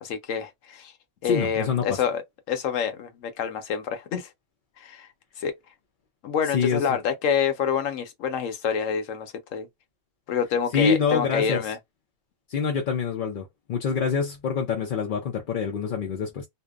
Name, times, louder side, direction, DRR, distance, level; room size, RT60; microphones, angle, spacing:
voice 1, 0.0-0.9 1.2-2.2 2.5-4.3 4.8-5.1 5.4-5.5 6.2-9.7 10.3-11.8, left 7 dB, 75° left, 1.1 m, -27 dB
voice 2, 1.2-2.0 6.5-7.0 10.7-11.7 12.5-16.5, left 6 dB, 55° left, 0.6 m, -26 dB
2.7 x 2.1 x 2.3 m
omnidirectional pair, 1.4 m